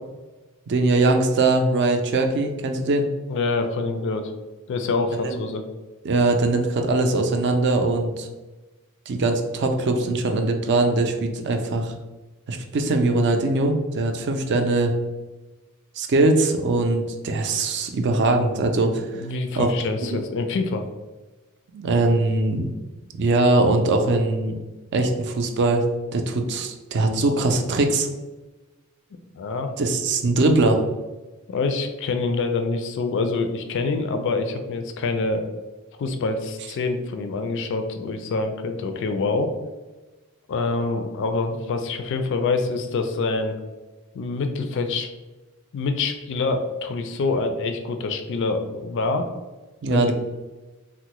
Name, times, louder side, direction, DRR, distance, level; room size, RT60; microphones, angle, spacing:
voice 1, 0.7-3.1 5.2-5.4 6.0-8.3 9.1-11.9 12.5-14.9 16.0-19.3 19.6-19.7 20.1-20.2 21.7-22.7 23.1-24.5 24.9-25.8 26.1-28.1 29.8-30.8 49.8-50.1, right 2 dB, 55° right, 4 dB, 0.4 m, -21 dB
voice 2, 3.3-4.3 4.7-5.6 19.1-20.9 29.4-29.7 31.5-35.4 36.0-39.5 40.5-43.5 44.1-45.1 45.7-49.3 49.9-50.0, left 3 dB, 60° left, 6 dB, 0.3 m, -26 dB
3.5 x 2.0 x 2.9 m, 1.2 s
head